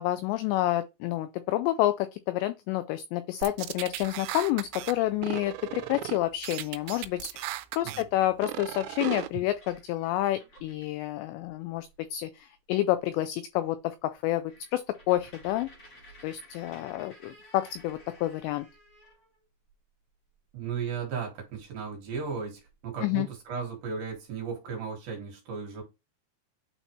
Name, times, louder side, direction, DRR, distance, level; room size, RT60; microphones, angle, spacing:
voice 1, 0.0-15.7 16.2-18.7 23.0-23.3, left 15 dB, 85° left, 2.5 m, -29 dB
sound 1, 3.4-4.9 5.2-6.2 6.4-8.0 8.4-9.3, right 15 dB, 85° right, 3.0 m, -36 dB
sound 2, 9.0-11.0 11.4-11.5 11.8-12.2 12.7-12.8 13.2-13.3 13.6-13.7 14.1-19.7 21.1-21.3 21.6-22.9 23.5-23.6 23.8-24.4, equal, 40° left, 1.8 m, -54 dB
voice 2, 20.5-25.8, right 6 dB, 60° right, 2.8 m, -35 dB
9.0 x 4.1 x 3.0 m
omnidirectional pair, 5.5 m